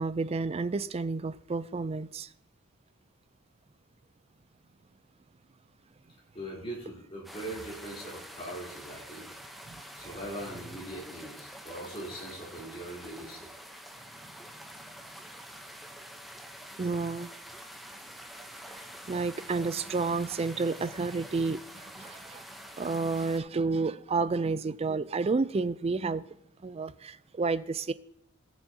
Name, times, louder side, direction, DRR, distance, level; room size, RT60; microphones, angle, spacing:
voice 1, 0.0-2.3 9.7-9.8 10.1-10.2 16.8-17.3 19.1-22.4 22.8-26.3 26.6-27.9, right 4 dB, 25° right, 0.4 m, -30 dB
voice 2, 6.3-9.3 10.0-13.5, right 1 dB, 25° left, 3.4 m, -41 dB
sound 1, 7.2-23.4, equal, ahead, 0.8 m, -47 dB
18.0 x 7.1 x 2.8 m
head